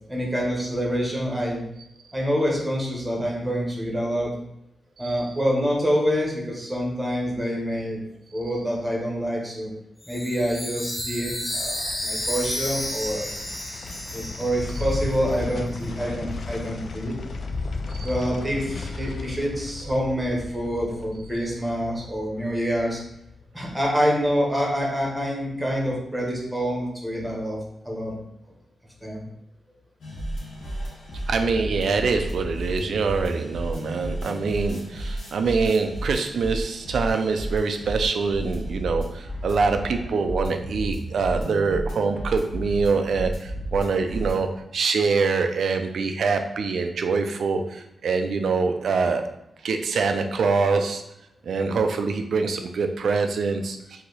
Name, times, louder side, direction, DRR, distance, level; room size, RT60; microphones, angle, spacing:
voice 1, 0.1-1.6 2.1-4.3 5.0-8.0 8.3-9.7 10.0-13.3 14.1-17.2 18.0-23.0 23.5-28.2 29.0-29.2, equal, 5° right, -2 dB, 1.2 m, -26 dB
Chime, 10.0-15.6, left 1 dB, 15° left, 0.7 m, -32 dB
sound 1, 11.0-24.2 24.5-24.6, left 3 dB, 55° left, 0.4 m, -35 dB
Minimal Techno with Real Drums, 30.0-44.4, right 1 dB, 75° left, 1.3 m, -32 dB
voice 2, 31.3-49.2 49.6-51.0 51.4-54.0, right 4 dB, 70° right, 6 dB, 0.5 m, -24 dB
4.6 x 2.8 x 4.0 m, 0.77 s
wide cardioid pair, 145°, 0 cm